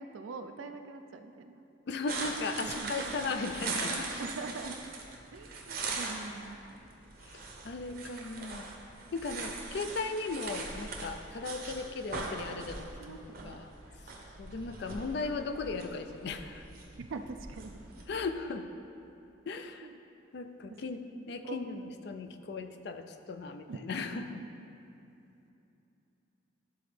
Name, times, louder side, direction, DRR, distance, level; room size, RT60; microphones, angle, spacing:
voice 1, 0.0-1.6 2.6-3.1 4.2-4.8 5.3-6.9 13.0-13.6 17.0-17.8 19.5-20.0 20.9-21.9 23.7-23.8 24.4-24.5, right 3 dB, 75° right, 7 dB, 0.4 m, -44 dB
voice 2, 1.9-4.2 7.3-8.6 9.1-13.7 14.4-16.6 18.1-18.7 19.5-19.9 20.3-24.4, left 3 dB, 55° left, 7 dB, 0.3 m, -37 dB
sound 1, 2.1-18.1, right 3 dB, 50° right, 0.7 m, -41 dB
11.5 x 3.9 x 3.3 m, 2.8 s
head